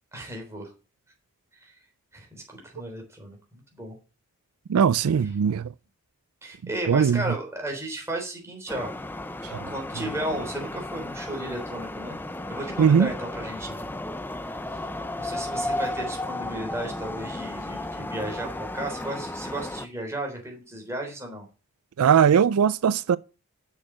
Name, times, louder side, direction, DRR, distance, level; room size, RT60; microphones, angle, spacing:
voice 1, 0.1-0.7 1.5-1.7 2.1-4.0 6.4-8.9 9.7-12.2 12.5-13.8 14.4-14.8 15.2-21.5, right 1 dB, 10° right, 3.6 m, -34 dB
voice 2, 4.7-5.7 6.9-7.2 9.5-9.7 12.8-13.1 22.0-23.2, right 7 dB, 80° right, 0.4 m, -20 dB
sound 1, 8.7-19.9, left 1 dB, 10° left, 0.4 m, -34 dB
7.4 x 6.6 x 7.4 m
head